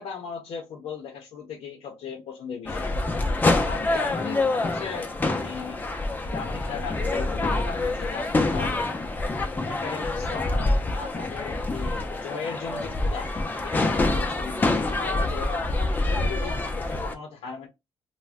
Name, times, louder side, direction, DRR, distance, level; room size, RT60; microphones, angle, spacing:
voice 1, 0.0-2.9 3.6-5.8 6.3-8.8 9.2-13.4 13.6-15.7 16.0-17.7, left 6 dB, 80° left, 0.5 m, -37 dB
sound 1, 2.7-17.1, left 2 dB, 20° left, 0.4 m, -26 dB
2.4 x 2.0 x 3.3 m
wide cardioid pair, 155°, 10 cm